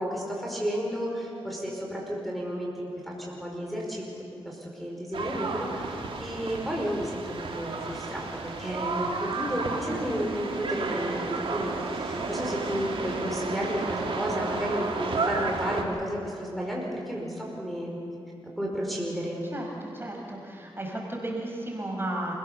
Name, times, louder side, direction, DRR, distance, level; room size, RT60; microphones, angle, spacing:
voice 1, 0.0-4.0 4.4-18.0 18.6-19.5, equal, ahead, -3 dB, 5.1 m, -32 dB
sound 1, 5.1-15.8, right 3 dB, 70° right, 2.7 m, -32 dB
voice 2, 19.5-22.3, right 1 dB, 25° right, -1 dB, 5.7 m, -34 dB
27.5 x 16.5 x 6.9 m, 2.6 s
cardioid pair, 55°, 10 cm